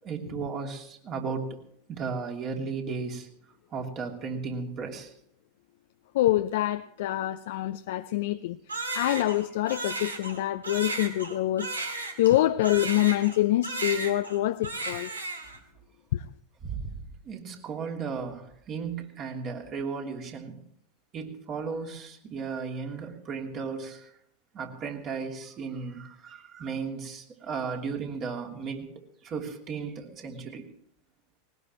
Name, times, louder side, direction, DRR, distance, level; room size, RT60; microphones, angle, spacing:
voice 1, 0.0-1.5 1.9-3.3 3.7-5.1 16.6-16.9 17.2-20.6 21.1-24.1 24.5-30.7, right 5 dB, 40° right, 1 dB, 3.2 m, -35 dB
voice 2, 6.1-8.6 8.9-11.7 12.2-15.1 16.1-16.2, left 14 dB, 65° left, 9 dB, 0.5 m, -26 dB
Crying sobbing, 8.7-13.4 13.6-14.4 14.6-15.6, right 2 dB, 90° right, 2.5 m, -34 dB
20.0 x 20.0 x 3.2 m, 0.69 s
figure-of-eight pair, 90°, 0 cm